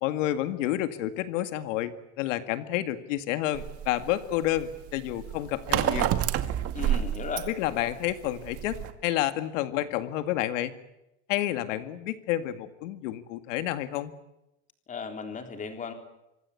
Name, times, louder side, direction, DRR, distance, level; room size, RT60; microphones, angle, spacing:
voice 1, 0.0-6.1 7.5-10.7 11.3-14.1, left 13 dB, 90° left, 10 dB, 2.0 m, -30 dB
sound 1, 3.5-8.9, right 11 dB, 40° right, 2.1 m, -29 dB
voice 2, 6.7-7.5 14.9-15.9, left 5 dB, 20° left, 6 dB, 3.7 m, -35 dB
25.5 x 25.5 x 8.4 m, 0.89 s
cardioid pair, 160°, 37 cm